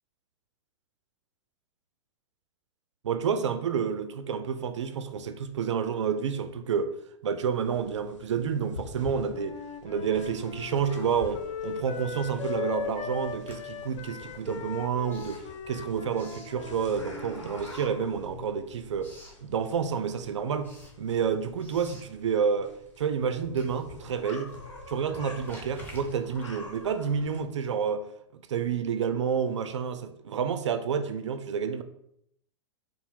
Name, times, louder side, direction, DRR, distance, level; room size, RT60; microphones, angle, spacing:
voice 1, 3.0-7.0 7.2-19.1 19.4-20.7 21.0-22.7 23.0-24.5 24.9-28.1 28.3-31.8, right 7 dB, 70° right, 0.4 m, -29 dB
sound 1, 7.6-27.4, left 3 dB, 80° left, 0.9 m, -47 dB
Wind instrument woodwind instrument, 9.3-17.4, left 7 dB, 30° left, 0.4 m, -38 dB
Writing, 10.4-12.0 12.3-17.1 17.5-18.5 18.8-19.4 19.9-27.5, left 1 dB, 15° left, 1.1 m, -53 dB
4.5 x 2.0 x 3.5 m
figure-of-eight pair, 100°, 15 cm